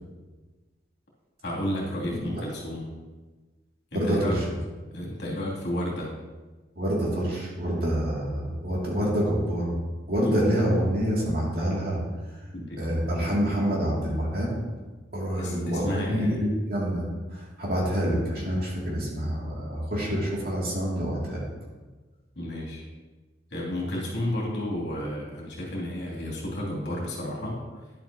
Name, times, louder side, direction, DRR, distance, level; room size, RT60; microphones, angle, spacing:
voice 1, 1.4-2.8 3.9-4.4 4.9-6.1 10.2-10.3 12.5-12.8 15.4-16.4 19.9-20.2 22.4-22.8 23.5-27.6, left 1 dB, 65° left, -4 dB, 2.8 m, -32 dB
voice 2, 3.9-4.6 6.8-9.7 10.1-12.0 12.8-14.5 15.1-17.0 17.3-21.5, equal, 55° right, -4 dB, 2.5 m, -27 dB
11.0 x 7.9 x 2.9 m, 1.3 s
head